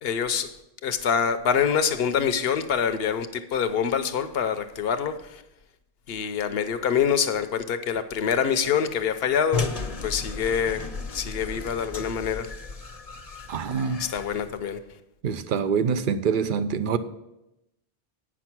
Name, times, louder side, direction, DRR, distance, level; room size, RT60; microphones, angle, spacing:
voice 1, 0.0-0.5 0.8-5.4 6.1-9.7 10.0-12.5 14.0-14.8, left 7 dB, 65° left, 10 dB, 0.9 m, -25 dB
sound 1, 9.5-14.6, left 4 dB, 40° left, 0.7 m, -34 dB
voice 2, 13.5-14.0 15.2-17.0, right 6 dB, 60° right, 12 dB, 0.7 m, -25 dB
9.0 x 6.2 x 5.9 m, 0.89 s
omnidirectional pair, 1.1 m